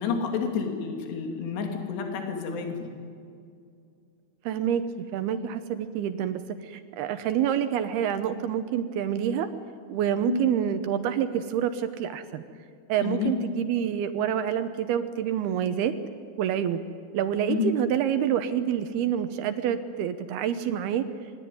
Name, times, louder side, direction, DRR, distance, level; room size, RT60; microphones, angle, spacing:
voice 1, 0.0-2.9 10.3-10.4 13.0-13.4 17.5-17.7, left 6 dB, 60° left, 3 dB, 4.7 m, -29 dB
voice 2, 4.5-4.8 5.1-9.5 9.9-12.4 12.9-16.0 16.4-16.8 17.1-21.1, right 9 dB, 75° right, 10 dB, 2.4 m, -27 dB
26.5 x 22.0 x 9.5 m, 2.4 s
omnidirectional pair, 5.6 m